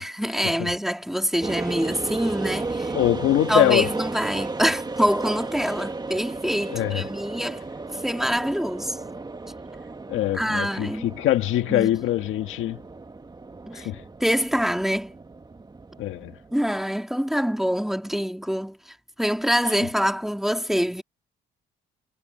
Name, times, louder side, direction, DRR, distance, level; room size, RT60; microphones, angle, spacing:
voice 1, 0.0-2.9 3.5-7.6 7.9-9.2 10.3-11.1 11.7-12.0 13.7-13.9 14.2-15.1 16.5-21.0, equal, ahead, 2.9 m, -25 dB
sound 1, 1.4-16.6, right 3 dB, 20° right, 1.8 m, -34 dB
voice 2, 2.9-3.9 6.7-7.0 10.1-10.9 11.2-12.8 13.7-14.0 16.0-16.3, left 13 dB, 85° left, 1.7 m, -23 dB
cardioid pair, 90°, 20 cm